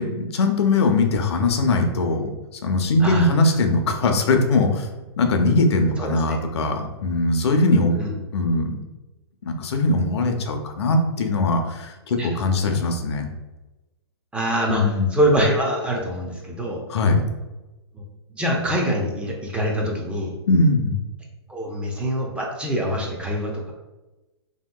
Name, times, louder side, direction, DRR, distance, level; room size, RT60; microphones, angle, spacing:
voice 1, 0.0-2.3 2.6-4.9 5.2-8.0 8.3-8.8 9.4-13.3 14.7-15.1 16.9-17.2 20.5-20.9, left 2 dB, 70° left, 5 dB, 0.5 m, -20 dB
voice 2, 6.0-6.4 7.9-8.1 12.2-12.8 14.3-16.8 17.9-18.0 18.3-20.3 21.5-23.7, equal, 5° right, -2 dB, 0.5 m, -25 dB
3.4 x 2.7 x 2.2 m, 1.1 s
hypercardioid pair, 130°, 15 cm